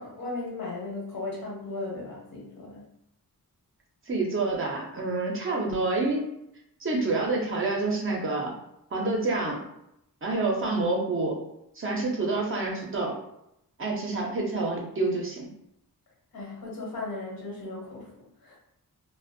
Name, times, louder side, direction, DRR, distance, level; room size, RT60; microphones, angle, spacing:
voice 1, 0.0-2.9 16.3-18.6, left 2 dB, 75° left, -4 dB, 1.0 m, -36 dB
voice 2, 4.1-6.3 6.8-8.5 8.9-9.6 10.2-11.4 11.8-13.2 13.8-15.5, right 3 dB, 35° right, -1 dB, 0.5 m, -28 dB
2.5 x 2.1 x 2.5 m, 0.79 s
wide cardioid pair, 155°, 35 cm